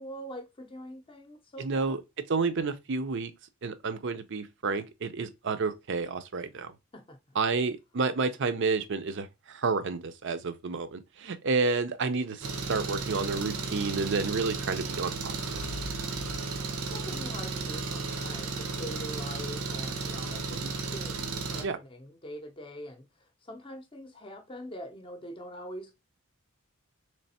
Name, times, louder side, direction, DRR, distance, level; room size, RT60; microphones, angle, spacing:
voice 1, 0.0-1.9 6.9-7.4 16.9-20.7 20.9-25.9, equal, 25° left, 0.6 m, -43 dB
voice 2, 1.6-2.0 2.3-3.3 3.6-6.7 7.3-15.3 20.5-20.7 21.6-21.8, right 4 dB, 55° right, 0.5 m, -30 dB
Engine, 12.4-21.6, right 4 dB, 90° right, 0.9 m, -34 dB
sound 1, 15.1-18.4, left 2 dB, 75° left, 0.4 m, -46 dB
3.3 x 3.3 x 4.1 m
head